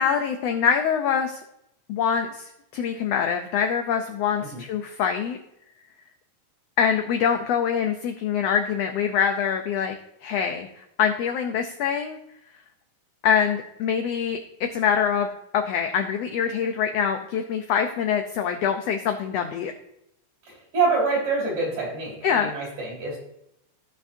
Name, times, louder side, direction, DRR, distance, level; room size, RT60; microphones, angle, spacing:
voice 1, 0.0-1.4 1.9-5.4 6.8-9.9 10.2-12.2 13.2-15.3 15.5-19.7 22.2-22.5, left 7 dB, 80° left, 5 dB, 1.4 m, -24 dB
voice 2, 20.5-23.2, right 4 dB, 65° right, -4 dB, 4.7 m, -26 dB
16.0 x 5.7 x 2.6 m, 0.81 s
omnidirectional pair, 3.6 m